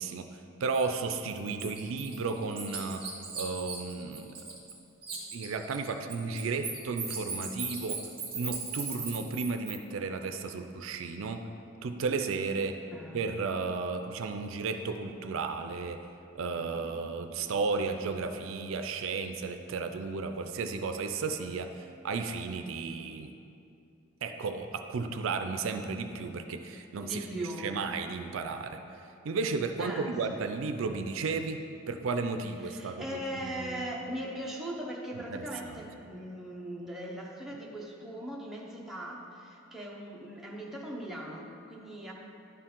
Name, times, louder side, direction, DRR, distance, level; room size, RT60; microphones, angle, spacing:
voice 1, 0.0-4.5 5.3-8.0 8.3-11.5 11.8-12.8 13.1-16.0 16.3-23.3 24.2-28.8 29.2-33.9 35.2-35.8, right 4 dB, 70° right, 7 dB, 0.4 m, -34 dB
Bird, 0.7-0.9 1.3-4.8 5.0-9.8, right 5 dB, 25° right, 1.3 m, -38 dB
voice 2, 12.6-13.2 27.0-27.7 29.8-30.4 32.6-42.1, equal, ahead, -4 dB, 0.8 m, -39 dB
11.0 x 4.5 x 3.7 m, 2.6 s
head